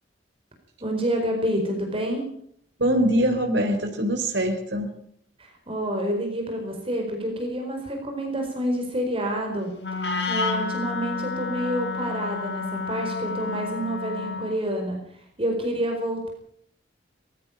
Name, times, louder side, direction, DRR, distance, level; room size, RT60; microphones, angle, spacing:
voice 1, 0.8-2.3 5.4-16.3, equal, 30° right, 2 dB, 4.6 m, -28 dB
voice 2, 2.8-4.9, right 1 dB, 75° right, 4 dB, 3.7 m, -23 dB
Wind instrument woodwind instrument, 9.8-14.7, left 4 dB, 70° left, 4.0 m, -30 dB
21.0 x 15.0 x 8.7 m, 0.67 s
head